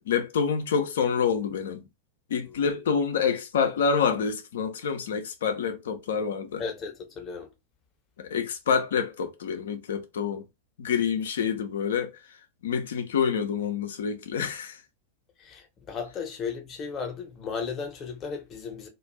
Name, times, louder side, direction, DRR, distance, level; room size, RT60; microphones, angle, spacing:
voice 1, 0.0-1.9 2.3-6.6 8.2-10.4 10.8-12.2 12.6-14.8, left 6 dB, 60° left, 0.6 m, -27 dB
voice 2, 6.6-7.5 14.4-14.5 15.4-18.9, left 5 dB, 30° left, 0.8 m, -35 dB
2.4 x 2.3 x 3.1 m
figure-of-eight pair, 90°, 0 cm